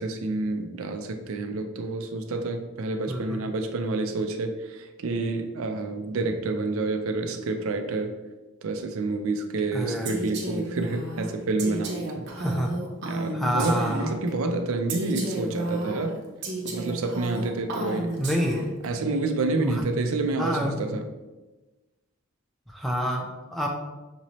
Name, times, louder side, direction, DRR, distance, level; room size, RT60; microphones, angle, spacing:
voice 1, 0.0-8.1 8.6-12.3 13.0-16.2 16.6-18.1 18.8-21.1, right 3 dB, 75° right, 6 dB, 0.4 m, -28 dB
voice 2, 3.1-3.4 9.7-10.2 12.4-12.7 13.3-14.2 18.2-18.7 19.6-19.8 20.4-20.8 22.7-23.7, equal, ahead, 0 dB, 0.4 m, -28 dB
Female speech woman speaking, 10.0-14.3 14.9-18.9, right 2 dB, 50° right, 0.8 m, -33 dB
6.1 x 3.0 x 2.7 m, 1.1 s
head